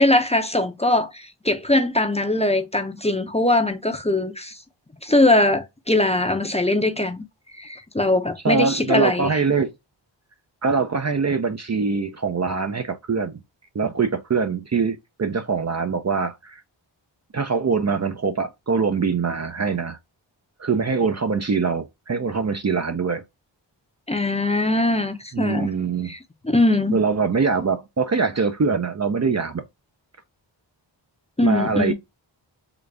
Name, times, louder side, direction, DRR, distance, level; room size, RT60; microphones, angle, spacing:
voice 1, 0.0-4.6 5.0-7.2 7.6-9.3 24.1-25.7 26.1-26.2 26.4-27.0 31.4-31.9, left 2 dB, 15° left, 0.7 m, -21 dB
voice 2, 8.4-9.7 10.6-13.4 13.7-16.6 17.3-20.0 20.6-23.2 25.3-26.1 26.9-29.6 31.4-31.9, right 5 dB, 35° right, 0.6 m, -23 dB
3.9 x 2.4 x 3.3 m
cardioid pair, 55°, 45 cm